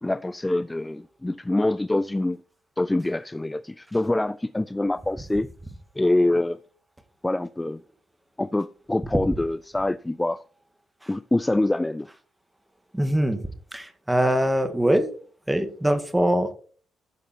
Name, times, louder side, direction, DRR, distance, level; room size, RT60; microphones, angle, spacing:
voice 1, 0.0-2.4 2.8-5.5 6.0-6.6 7.2-7.8 8.4-10.4 11.1-12.1, left 2 dB, 10° left, 0.4 m, -25 dB
voice 2, 12.9-13.4 13.7-15.1 15.5-16.5, right 1 dB, 10° right, 2.0 m, -22 dB
14.5 x 6.6 x 4.5 m
cardioid pair, 90°, 0 cm